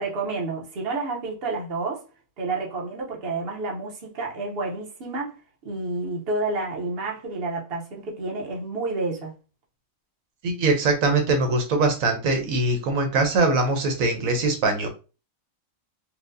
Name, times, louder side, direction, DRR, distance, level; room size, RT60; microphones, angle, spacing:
voice 1, 0.0-2.1 2.4-5.4 5.6-9.3, right 3 dB, 50° right, 1.0 m, -30 dB
voice 2, 10.4-14.9, right 3 dB, 80° right, 1.1 m, -22 dB
4.3 x 2.1 x 2.6 m
omnidirectional pair, 1.4 m